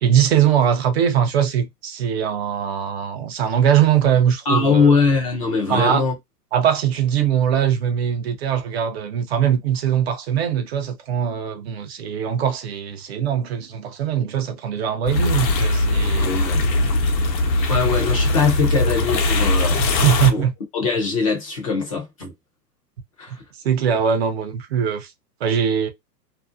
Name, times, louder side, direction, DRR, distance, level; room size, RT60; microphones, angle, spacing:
voice 1, 0.0-4.9 5.7-6.0 6.5-16.3 19.8-20.5 23.6-25.1 25.4-25.9, right 9 dB, 45° right, 0.4 m, -21 dB
voice 2, 4.5-6.1 16.2-16.6 17.7-20.0 20.3-20.4 20.7-22.3 23.2-23.3, left 5 dB, 25° left, 0.4 m, -21 dB
sound 1, 15.1-20.3, left 2 dB, 85° left, 0.8 m, -20 dB
2.5 x 2.0 x 2.4 m
hypercardioid pair, 135°, 49 cm